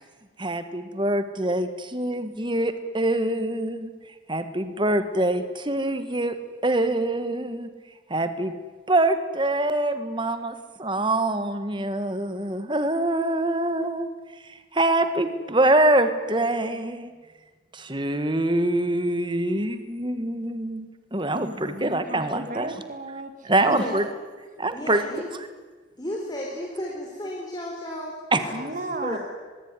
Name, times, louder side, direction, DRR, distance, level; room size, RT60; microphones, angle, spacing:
voice 1, 0.4-3.9 4.3-6.4 6.6-7.7 8.1-8.6 8.9-14.1 14.4-17.1 17.7-22.7 23.4-24.1 24.6-25.0 28.3-28.4, right 1 dB, 25° right, 10 dB, 1.6 m, -24 dB
voice 2, 21.3-24.0 28.5-29.2, right 2 dB, 40° right, 7 dB, 2.1 m, -34 dB
voice 3, 23.6-23.9 24.7-25.3 26.0-28.7 29.0-29.2, left 1 dB, 20° left, -1 dB, 3.9 m, -33 dB
23.5 x 22.0 x 9.8 m, 1.4 s
head